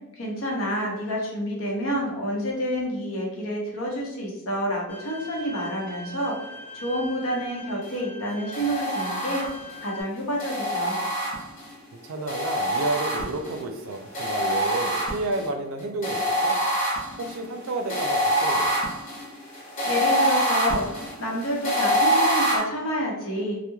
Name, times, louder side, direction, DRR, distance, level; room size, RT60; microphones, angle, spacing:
voice 1, 0.1-6.3 6.7-9.4 9.8-11.0 19.6-23.6, equal, 80° left, -2 dB, 0.8 m, -29 dB
Bowed string instrument, 4.9-10.0, left 1 dB, 5° left, 0.4 m, -42 dB
sound 1, 8.5-9.8 10.4-11.7 12.3-13.6 14.1-15.5 16.0-22.6, equal, 40° left, 0.7 m, -25 dB
voice 2, 12.1-16.6 17.2-18.7, right 2 dB, 85° right, 5 dB, 0.4 m, -31 dB
2.9 x 2.1 x 2.2 m, 0.98 s
head